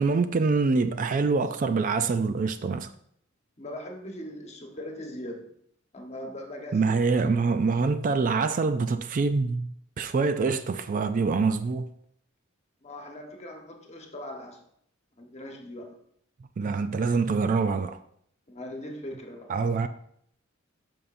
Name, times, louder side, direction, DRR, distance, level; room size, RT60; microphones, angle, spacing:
voice 1, 0.0-2.9 6.7-9.7 10.0-11.9 16.6-18.0 19.5-19.9, right 4 dB, 40° right, 0.3 m, -25 dB
voice 2, 3.6-5.5 5.9-7.0 12.8-14.6 15.2-16.0 18.5-19.5, left 1 dB, 30° left, 1.2 m, -40 dB
12.5 x 5.5 x 2.6 m
head